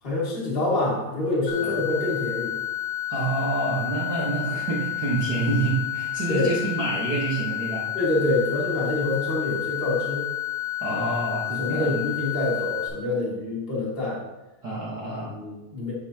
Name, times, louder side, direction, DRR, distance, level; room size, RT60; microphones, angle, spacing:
voice 1, 0.0-2.6 6.3-6.5 7.9-10.3 10.9-11.0 11.6-14.2 15.2-15.9, left 2 dB, 20° left, -6 dB, 1.7 m, -26 dB
sound 1, 1.5-12.9, left 13 dB, 60° left, 1.8 m, -30 dB
voice 2, 3.1-7.8 10.8-12.0 14.6-15.3, right 3 dB, 50° right, -7 dB, 1.2 m, -27 dB
10.0 x 5.2 x 2.9 m, 1.0 s
omnidirectional pair, 3.6 m